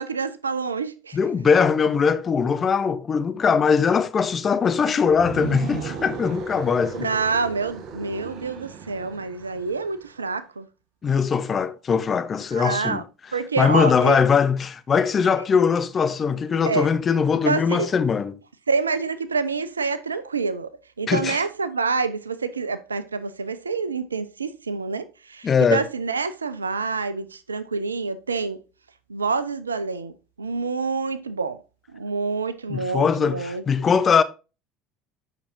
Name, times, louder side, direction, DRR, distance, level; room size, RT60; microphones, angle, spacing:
voice 1, 0.0-1.2 6.9-10.7 12.5-13.0 13.3-14.2 16.6-16.9 17.4-17.9 18.7-20.7 21.0-28.6 29.1-31.6 31.9-33.9, right 4 dB, 85° right, 0.5 m, -27 dB
voice 2, 1.1-7.1 11.0-13.0 13.6-18.4 21.1-21.4 25.4-25.8 32.7-34.2, left 6 dB, 30° left, 0.9 m, -21 dB
sound 1, 5.1-10.1, right 7 dB, 50° right, 1.3 m, -35 dB
8.7 x 6.0 x 2.7 m
figure-of-eight pair, 65°, 0 cm